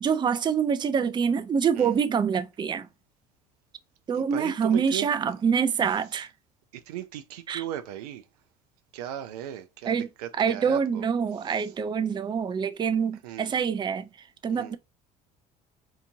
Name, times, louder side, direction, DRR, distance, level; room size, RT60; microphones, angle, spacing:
voice 1, 0.0-2.9 4.1-6.3 7.5-7.6 9.9-10.1 10.4-14.1 14.4-14.8, right 6 dB, 25° right, 0.4 m, -25 dB
voice 2, 4.1-5.1 6.9-8.2 8.9-11.1 11.5-11.7 13.2-13.6 14.5-14.7, right 11 dB, 80° right, 0.4 m, -37 dB
2.8 x 2.5 x 2.7 m
hypercardioid pair, 65°, 20 cm